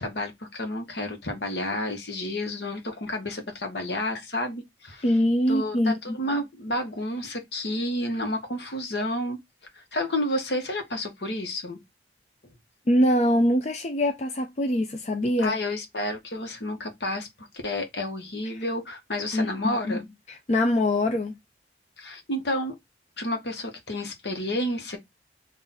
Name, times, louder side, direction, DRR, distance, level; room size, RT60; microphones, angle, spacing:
voice 1, 0.0-5.0 5.5-9.4 9.8-11.8 15.4-20.0 22.0-22.7 23.2-25.0, left 1 dB, 65° left, 1.2 m, -30 dB
voice 2, 5.0-6.2 12.9-15.5 18.5-18.6 19.3-20.0 20.3-21.3, left 1 dB, 40° left, 0.5 m, -23 dB
3.7 x 2.5 x 4.1 m
head